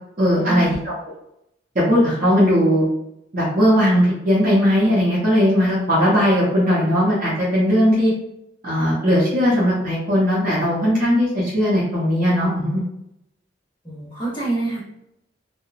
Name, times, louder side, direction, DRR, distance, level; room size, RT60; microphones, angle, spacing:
voice 1, 0.2-0.9 1.7-2.8 3.3-8.1 8.6-12.8, equal, 45° right, -8 dB, 0.7 m, -18 dB
voice 2, 13.8-14.8, right 2 dB, 25° left, -6 dB, 0.7 m, -26 dB
2.8 x 2.1 x 2.4 m, 0.82 s
head